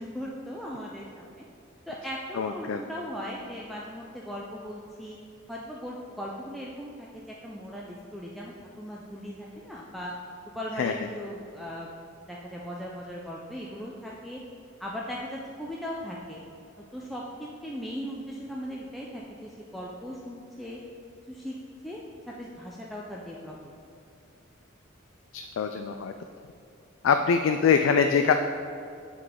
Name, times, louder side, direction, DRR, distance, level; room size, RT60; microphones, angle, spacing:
voice 1, 0.0-1.4 1.9-5.2 5.5-10.1 10.5-11.9 12.3-14.4 14.8-16.4 16.9-20.8 21.3-21.6 21.8-23.6, equal, ahead, -4 dB, 0.4 m, -38 dB
voice 2, 2.3-2.8 10.8-11.1 25.3-26.1 27.0-28.3, left 6 dB, 75° left, 6 dB, 0.3 m, -24 dB
9.3 x 4.0 x 3.7 m, 2.5 s
head